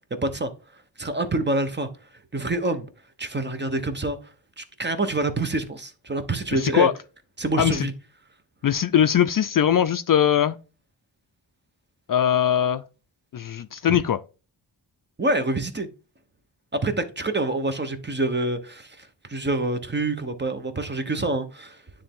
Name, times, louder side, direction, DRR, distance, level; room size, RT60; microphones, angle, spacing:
voice 1, 0.1-1.9 2.3-2.9 3.2-6.9 7.4-7.9 13.8-14.0 15.2-15.9 16.7-21.8, right 2 dB, 25° right, 1.0 m, -27 dB
voice 2, 6.5-6.9 7.6-7.9 8.6-10.6 12.1-12.8 13.3-14.2, left 9 dB, 50° left, 0.4 m, -21 dB
9.7 x 3.4 x 3.6 m
wide cardioid pair, 110°, 45 cm